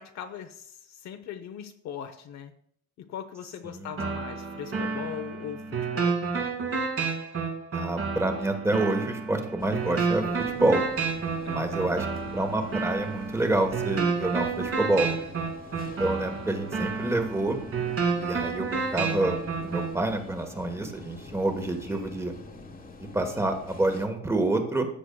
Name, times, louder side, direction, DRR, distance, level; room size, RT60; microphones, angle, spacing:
voice 1, 0.0-2.5 3.0-6.2 11.4-12.0, left 9 dB, 60° left, 7 dB, 0.8 m, -40 dB
sound 1, 4.0-20.0, right 5 dB, 50° right, 2.0 m, -30 dB
voice 2, 7.7-10.8 11.5-12.1 12.3-15.1 16.0-17.6 18.2-19.4 19.6-22.3 23.1-24.9, right 2 dB, 10° right, 6 dB, 1.2 m, -27 dB
sound 2, 9.6-24.1, left 2 dB, 25° left, 1.3 m, -45 dB
13.5 x 8.0 x 2.3 m, 0.67 s
cardioid pair, 120°, 31 cm